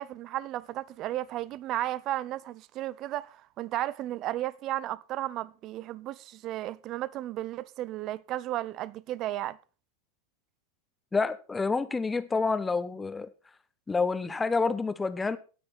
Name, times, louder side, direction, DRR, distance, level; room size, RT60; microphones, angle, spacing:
voice 1, 0.0-9.6, right 14 dB, 35° right, 0.6 m, -34 dB
voice 2, 11.1-13.3 13.9-15.4, left 4 dB, 10° left, 0.9 m, -28 dB
17.5 x 6.3 x 4.4 m
figure-of-eight pair, 90°, 0 cm